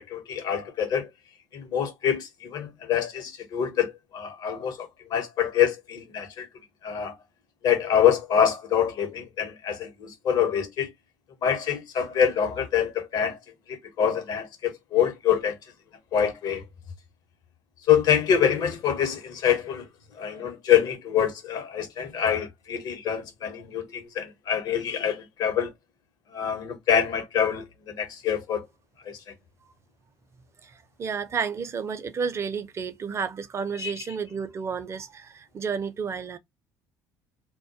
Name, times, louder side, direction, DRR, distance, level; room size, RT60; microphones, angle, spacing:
voice 1, 0.1-1.1 1.5-6.5 6.8-7.1 7.6-10.9 11.4-13.4 13.7-15.6 16.1-16.6 17.9-19.9 20.2-25.7 26.3-28.6 29.1-29.2 33.8-33.9, left 8 dB, 60° left, 0.8 m, -25 dB
voice 2, 30.6-36.4, right 6 dB, 40° right, 0.5 m, -31 dB
2.2 x 2.1 x 2.6 m
supercardioid pair, 75°, 7 cm